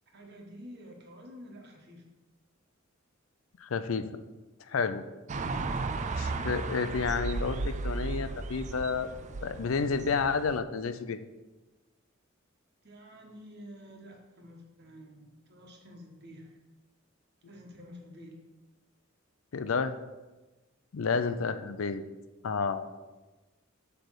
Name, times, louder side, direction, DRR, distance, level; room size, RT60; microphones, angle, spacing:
voice 1, 0.1-2.0 12.8-16.6 17.5-18.4, equal, 55° right, 1 dB, 1.4 m, -49 dB
voice 2, 3.6-4.1 4.7-5.0 6.2-9.1 9.4-11.2 19.5-19.9 20.9-22.0 22.4-22.8, left 5 dB, 80° left, 11 dB, 0.5 m, -30 dB
sound 1, 5.3-10.6, right 3 dB, 35° right, 0.4 m, -35 dB
7.8 x 3.4 x 6.3 m, 1.1 s
head